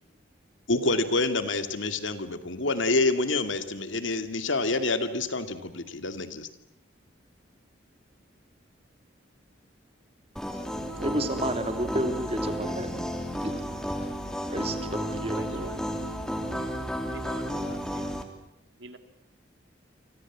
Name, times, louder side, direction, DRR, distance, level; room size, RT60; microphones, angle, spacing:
voice 1, 0.7-6.5, left 2 dB, 80° left, 9 dB, 2.5 m, -27 dB
sound 1, 10.4-18.2, equal, 5° left, 3.0 m, -32 dB
voice 2, 11.0-13.1 13.4-13.6 14.5-15.7, right 1 dB, 30° right, 7 dB, 3.0 m, -31 dB
voice 3, 15.0-15.8 16.6-16.7 17.1-18.0 18.8-19.0, right 2 dB, 70° right, 8 dB, 3.0 m, -44 dB
29.0 x 25.5 x 7.5 m, 0.77 s
head